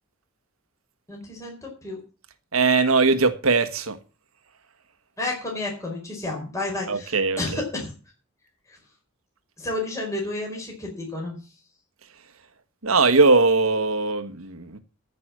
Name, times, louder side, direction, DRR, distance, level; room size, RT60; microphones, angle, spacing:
voice 1, 1.1-2.0 5.2-7.9 8.7-8.8 9.6-11.4, left 2 dB, 15° left, 4.7 m, -31 dB
voice 2, 2.5-4.0 6.9-7.6 12.8-14.8, right 3 dB, 90° right, 1.4 m, -20 dB
14.0 x 6.0 x 7.5 m
head